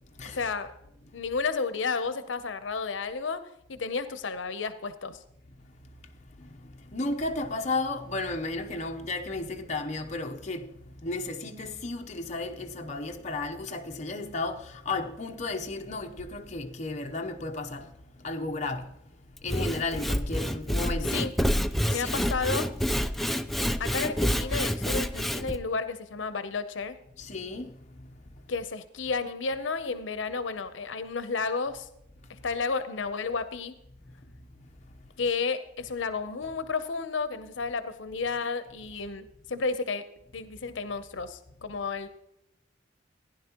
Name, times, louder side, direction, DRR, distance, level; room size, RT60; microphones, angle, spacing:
voice 1, 0.4-0.7 1.1-3.4 3.7-5.2 21.1-21.3 21.9-22.7 23.8-27.0 28.5-31.9 32.3-33.8 35.2-40.1 40.3-42.1, left 4 dB, 80° left, 0.7 m, -32 dB
voice 2, 6.9-10.7 11.0-17.9 18.2-18.9 19.4-21.1 21.9-22.3 27.2-27.7, left 2 dB, 40° left, 0.7 m, -33 dB
Sawing / Wood, 19.4-25.6, equal, ahead, 0.3 m, -28 dB
15.5 x 10.5 x 2.9 m
head